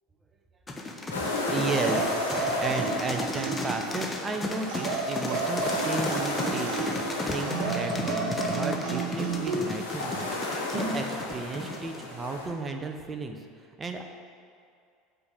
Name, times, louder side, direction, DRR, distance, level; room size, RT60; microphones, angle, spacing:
sound 1, 0.7-12.1, left 2 dB, 15° left, 1.3 m, -34 dB
sound 2, 1.1-12.5, left 2 dB, 85° left, 1.4 m, -34 dB
voice 1, 1.5-13.4 13.8-14.0, right 3 dB, 25° right, 4 dB, 1.0 m, -34 dB
sound 3, 1.7-4.0 4.7-7.0 7.4-9.6 10.7-11.0, right 3 dB, 55° right, 2.0 m, -31 dB
8.7 x 5.4 x 6.7 m, 2.3 s
figure-of-eight pair, 70°, 0 cm